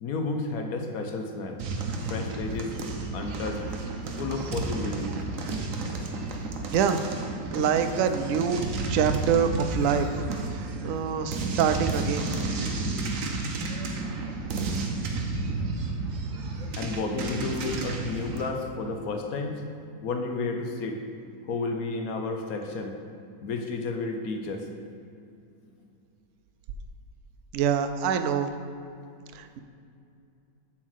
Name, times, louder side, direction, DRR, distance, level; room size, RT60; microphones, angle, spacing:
voice 1, 0.0-1.6 2.1-2.7 3.1-3.6 4.2-5.1 15.5-15.7 16.8-19.6 20.0-21.0 21.4-23.0 23.4-24.6, left 3 dB, 60° left, 3 dB, 1.1 m, -31 dB
sound 1, 1.6-18.5, right 3 dB, 60° right, 1.0 m, -32 dB
voice 2, 7.5-10.1 10.5-12.3 27.5-28.5 29.3-29.6, right 7 dB, 80° right, 8 dB, 0.7 m, -25 dB
7.3 x 4.5 x 6.4 m, 2.5 s
omnidirectional pair, 1.9 m